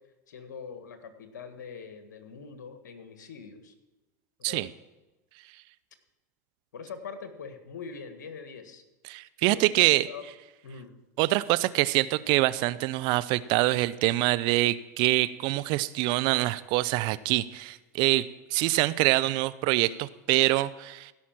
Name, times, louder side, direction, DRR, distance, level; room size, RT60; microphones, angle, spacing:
voice 1, 0.3-3.7 4.4-4.7 6.7-8.8 9.4-10.2 10.6-10.9, left 5 dB, 80° left, 8 dB, 1.7 m, -43 dB
voice 2, 9.1-10.1 11.2-21.1, right 18 dB, 55° right, 17 dB, 0.5 m, -25 dB
16.0 x 5.8 x 7.4 m, 1.1 s
hypercardioid pair, 100°, 10 cm